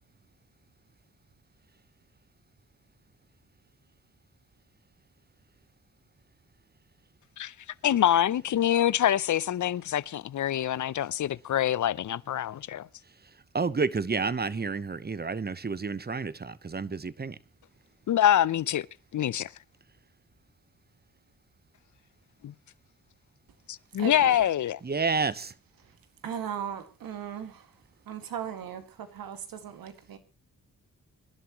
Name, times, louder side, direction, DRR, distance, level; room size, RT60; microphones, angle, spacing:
voice 1, 7.8-12.9 18.1-18.9 19.1-19.5 22.4-22.5 23.7-24.8, left 11 dB, 60° left, 0.7 m, -25 dB
voice 2, 13.5-17.4 24.8-25.5, right 4 dB, 30° right, 1.0 m, -30 dB
voice 3, 24.0-24.4 26.2-27.6 28.1-30.2, right 9 dB, 80° right, 2.1 m, -37 dB
25.5 x 11.5 x 3.1 m
cardioid pair, 55°, 34 cm